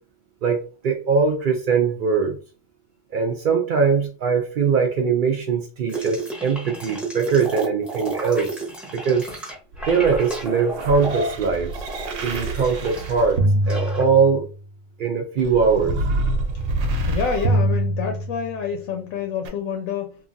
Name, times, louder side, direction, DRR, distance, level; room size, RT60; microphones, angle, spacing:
voice 1, 0.4-2.4 3.1-8.6 8.9-9.3 9.9-11.7 12.2-13.4 13.7-14.4 15.0-16.0, right 5 dB, 70° right, 0.4 m, -21 dB
sound 1, 5.9-13.2 13.4-14.1, right 2 dB, ahead, 0.6 m, -32 dB
sound 2, 9.7-14.6 15.4-18.7 19.4-19.5, right 1 dB, 90° right, 1.1 m, -25 dB
voice 2, 17.1-20.2, left 6 dB, 85° left, 1.0 m, -27 dB
2.9 x 2.4 x 2.5 m
omnidirectional pair, 1.4 m